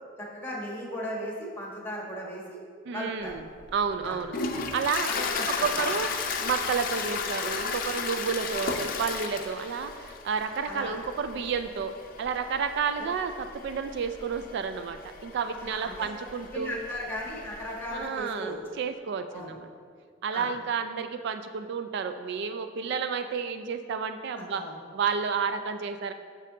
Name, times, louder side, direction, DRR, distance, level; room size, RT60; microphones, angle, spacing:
voice 1, 0.2-2.6 2.9-3.3 4.0-4.2 5.1-5.8 10.6-10.9 13.0-13.1 15.6-16.1 16.5-18.6 19.3-19.5 20.3-20.5 24.5-24.7, equal, 10° left, -3 dB, 1.3 m, -36 dB
voice 2, 2.9-3.5 3.7-5.1 5.5-6.1 6.4-16.8 17.9-19.7 20.2-24.6 24.9-26.1, right 6 dB, 60° right, 9 dB, 0.3 m, -31 dB
Toilet flush, 3.3-18.0, left 5 dB, 45° left, 0.5 m, -35 dB
6.6 x 6.3 x 3.7 m, 2.1 s
head